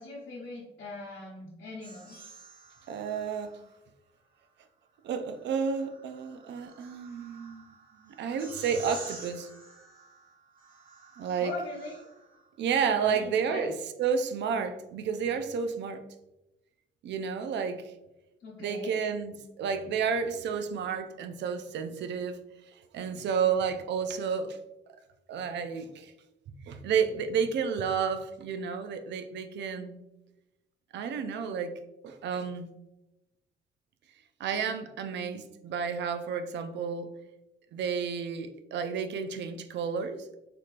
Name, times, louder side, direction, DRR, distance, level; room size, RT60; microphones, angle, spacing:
voice 1, 0.0-2.2 11.4-12.1 12.9-13.7 18.4-19.0, left 3 dB, 75° left, -6 dB, 0.8 m, -40 dB
sound 1, 1.8-3.8 5.2-12.4, right 3 dB, 45° right, 1.2 m, -49 dB
voice 2, 2.9-3.6 5.0-7.7 8.0-9.5 11.2-11.5 12.6-16.0 17.0-17.9 18.6-22.4 22.9-24.6 25.3-26.1 26.6-30.0 30.9-32.7 34.4-37.1 37.7-40.4, right 6 dB, 65° right, 10 dB, 0.4 m, -31 dB
3.2 x 2.9 x 2.5 m, 0.96 s
cardioid pair, 90°, 20 cm